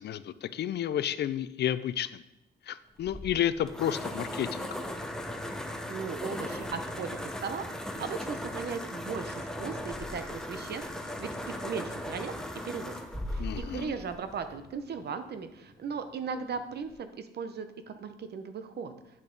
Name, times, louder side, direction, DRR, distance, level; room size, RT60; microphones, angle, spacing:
voice 1, 0.0-2.2 2.7-4.7 13.4-13.9, left 10 dB, 60° left, 14 dB, 0.5 m, -31 dB
sound 1, 3.0-14.8, left 1 dB, 5° left, 1.0 m, -38 dB
voice 2, 5.9-12.3 12.6-13.0 13.3-18.9, right 5 dB, 55° right, 9 dB, 0.9 m, -37 dB
9.0 x 5.7 x 3.9 m, 0.88 s
cardioid pair, 90°, 20 cm